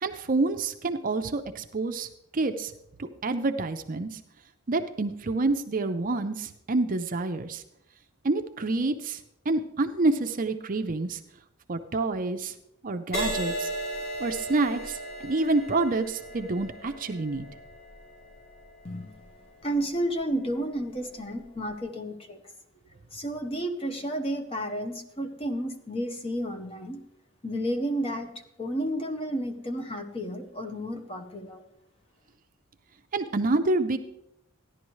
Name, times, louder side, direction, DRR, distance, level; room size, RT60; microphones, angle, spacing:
voice 1, 0.0-2.7 3.0-4.2 4.7-7.6 8.2-9.2 9.5-11.2 11.7-12.5 12.8-13.7 14.2-17.4 33.1-34.0, right 3 dB, 40° right, 8 dB, 0.6 m, -28 dB
Crash cymbal, 13.1-20.8 21.4-21.7, equal, 45° left, 5.6 m, -37 dB
voice 2, 18.8-19.2 19.6-22.4 23.1-27.0 27.4-28.3 28.6-31.6, right 1 dB, 25° left, 5 dB, 1.0 m, -31 dB
14.5 x 11.0 x 3.1 m, 0.79 s
head